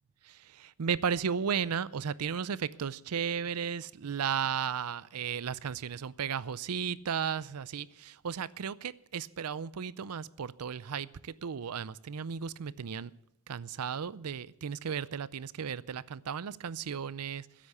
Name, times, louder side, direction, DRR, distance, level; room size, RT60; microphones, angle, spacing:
voice 1, 0.2-13.1 13.5-17.7, right 7 dB, 90° right, 0.5 m, -35 dB
15.5 x 8.4 x 8.3 m
head